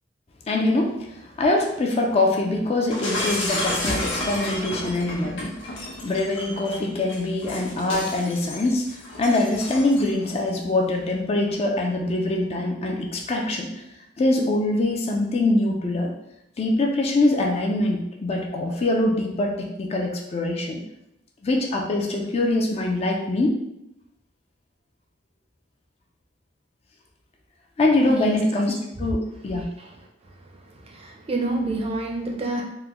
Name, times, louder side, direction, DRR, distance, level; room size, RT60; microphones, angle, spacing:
voice 1, 0.5-8.9 9.2-13.8 14.2-16.1 16.6-20.8 21.4-23.6 27.8-29.7, left 2 dB, 35° left, 1 dB, 0.4 m, -23 dB
Shatter, 2.9-10.3, left 1 dB, 80° left, 0.8 m, -31 dB
voice 2, 30.9-32.6, right 2 dB, 30° right, 0 dB, 0.5 m, -27 dB
3.6 x 2.1 x 2.9 m, 0.84 s
head